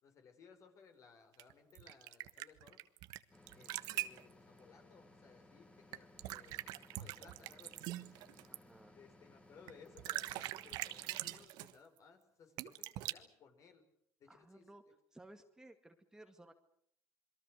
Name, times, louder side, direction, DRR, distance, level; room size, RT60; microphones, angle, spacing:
voice 1, 0.0-2.8 3.5-6.6 6.9-8.1 8.9-13.8 14.2-14.6, left 5 dB, 50° left, 6 dB, 5.5 m, -61 dB
sound 1, 1.4-3.2 3.5-4.2 5.9-8.6 9.7-9.8 10.0-11.7 12.6-13.1, right 17 dB, 80° right, 1.3 m, -43 dB
sound 2, 3.3-11.5, left 1 dB, 15° left, 2.9 m, -62 dB
voice 2, 8.5-8.9 14.3-14.8 15.1-16.5, right 1 dB, 10° right, 6 dB, 1.9 m, -58 dB
28.0 x 22.5 x 6.6 m, 0.67 s
cardioid pair, 125°, 7 cm